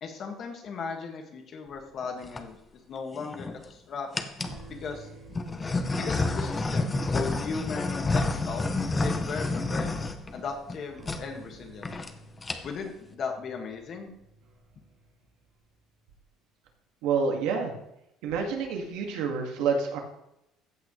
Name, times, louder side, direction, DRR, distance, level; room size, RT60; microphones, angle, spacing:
voice 1, 0.0-2.6 2.9-4.2 4.7-5.1 5.9-8.7 9.0-9.9 10.3-11.9 12.6-14.1, left 5 dB, 35° left, 3 dB, 1.9 m, -37 dB
sound 1, 2.0-2.4 3.1-3.7 4.1-4.6 5.3-10.8 11.0-11.2 11.5-11.6 11.8-12.1 12.4-12.9, left 3 dB, 15° left, 0.7 m, -29 dB
sound 2, 4.4-15.8, right 2 dB, 60° right, 3.9 m, -50 dB
voice 2, 17.0-17.7 18.2-20.0, right 5 dB, 75° right, 2 dB, 2.1 m, -28 dB
14.5 x 8.3 x 3.3 m, 0.82 s
cardioid pair, 165°, 0 cm